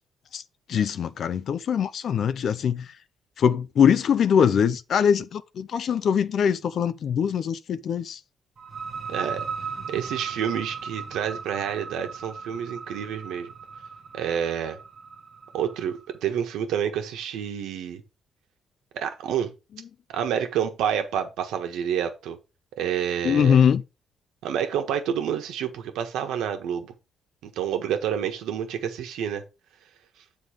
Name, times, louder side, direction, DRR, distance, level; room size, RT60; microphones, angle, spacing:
voice 1, 0.7-2.9 3.4-8.2 23.2-23.8, left 7 dB, 60° left, 0.5 m, -22 dB
sound 1, 8.6-16.1, right 5 dB, 40° right, 1.2 m, -37 dB
voice 2, 9.1-9.5 9.9-13.5 14.1-14.8 15.5-18.0 18.9-19.5 20.1-22.4 22.8-23.6 24.4-26.9 27.4-29.4, right 8 dB, 85° right, 1.4 m, -28 dB
7.8 x 3.8 x 5.1 m
cardioid pair, 90°, 0 cm